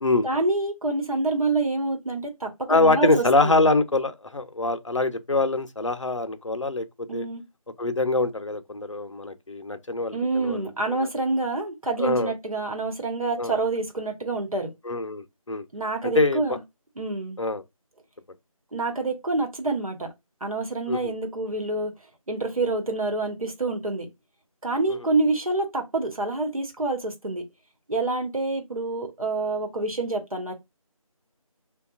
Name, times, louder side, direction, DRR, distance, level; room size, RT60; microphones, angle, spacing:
voice 1, 0.2-3.6 7.1-7.4 10.1-14.7 15.7-16.6 17.0-17.4 18.7-20.1 20.4-21.9 22.3-24.1 24.6-27.4 27.9-30.5, right 2 dB, 70° right, 1.1 m, -27 dB
voice 2, 2.7-6.8 7.1-7.3 7.8-11.0 12.0-12.3 13.4-13.6 14.8-15.6 16.1-16.4 17.4-17.6 20.9-21.1 24.9-25.0, left 2 dB, 55° left, 0.5 m, -24 dB
2.9 x 2.2 x 2.4 m
figure-of-eight pair, 175°, 19 cm